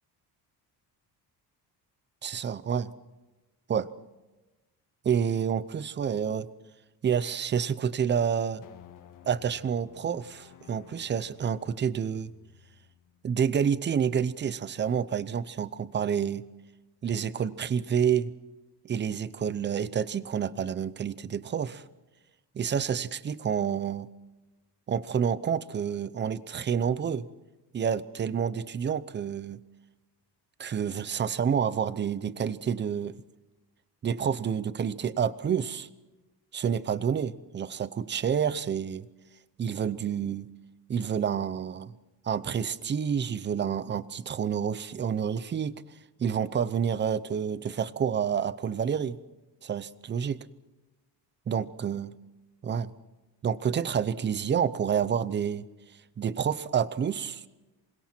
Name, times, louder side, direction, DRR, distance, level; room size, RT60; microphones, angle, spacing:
voice 1, 2.2-2.9 3.7-3.9 5.0-6.5 7.0-8.6 9.3-12.3 13.2-16.4 17.0-18.3 18.8-21.8 22.5-24.1 24.9-27.3 27.7-29.6 30.6-33.2 34.0-35.9 36.5-39.1 39.6-40.5 40.9-41.9 42.2-45.7 46.2-49.2 49.6-50.5 51.5-52.1 52.6-52.9 53.4-55.7 56.2-57.4, right 7 dB, 30° right, 16 dB, 0.7 m, -29 dB
sound 1, 8.6-15.1, left 10 dB, 55° left, 1.6 m, -55 dB
27.5 x 25.0 x 4.5 m, 1.1 s
cardioid pair, 170°, 39 cm